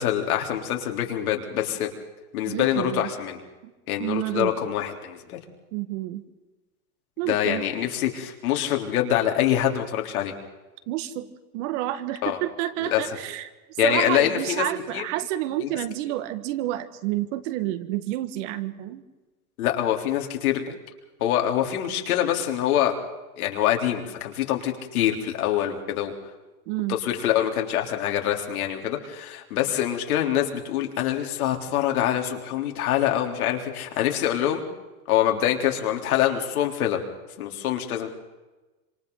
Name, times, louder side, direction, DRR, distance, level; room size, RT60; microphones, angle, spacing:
voice 1, 0.0-1.9 2.3-3.4 3.9-5.4 7.3-10.3 12.2-12.4 12.9-13.0 13.8-14.7 14.9-15.0 15.6-15.7 19.6-20.6 21.2-23.0 23.4-26.1 26.9-34.6 35.1-37.0 37.4-38.1, left 11 dB, 75° left, 3 dB, 3.7 m, -25 dB
voice 2, 2.5-3.1 3.6-3.7 4.0-4.7 5.7-6.3 7.2-7.6 10.9-13.5 13.8-19.0 26.7-27.0, right 14 dB, 55° right, 11 dB, 1.8 m, -29 dB
27.5 x 26.5 x 4.0 m, 1.1 s
supercardioid pair, 140°, 44 cm